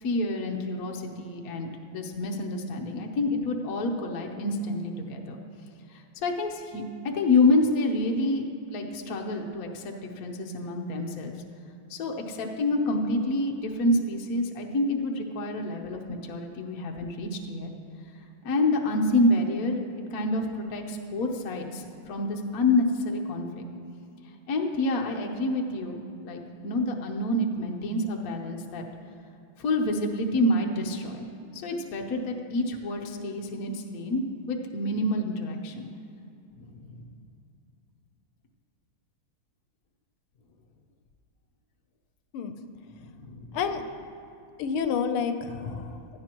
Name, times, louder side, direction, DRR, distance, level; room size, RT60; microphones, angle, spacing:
voice 1, 0.0-5.4 5.9-11.3 11.9-17.7 18.4-19.8 20.1-23.6 24.5-28.8 29.6-31.3 31.6-35.9 36.6-37.0 43.0-43.5, left 2 dB, 55° left, 1 dB, 1.2 m, -28 dB
voice 2, 44.6-46.2, left 6 dB, 90° left, 8 dB, 1.6 m, -29 dB
16.0 x 11.5 x 3.0 m, 2.6 s
omnidirectional pair, 2.3 m